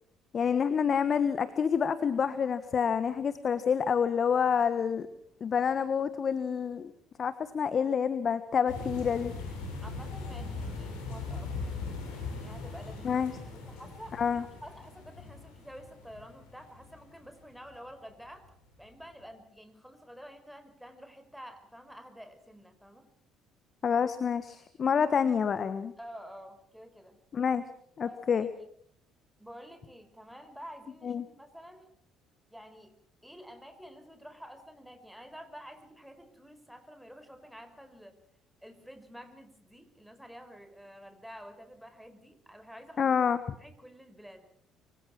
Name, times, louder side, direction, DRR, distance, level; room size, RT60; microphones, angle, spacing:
voice 1, 0.3-5.1 5.4-6.9 7.2-9.3 13.0-13.3 14.2-14.4 23.8-25.9 27.3-27.6 28.0-28.5 31.0-31.2 43.0-43.4, left 7 dB, 45° left, 13 dB, 1.4 m, -28 dB
sound 1, 8.7-17.7 18.3-18.5 18.7-18.9, left 3 dB, 70° left, 7.2 m, -40 dB
voice 2, 9.8-11.8 12.4-13.2 13.5-18.5 18.8-23.1 26.0-27.2 28.0-28.5 29.4-31.9 32.5-32.9 33.2-38.2 38.6-43.1 43.6-44.5, equal, ahead, 8 dB, 5.1 m, -49 dB
25.0 x 25.0 x 6.1 m, 0.62 s
figure-of-eight pair, 50°, 0 cm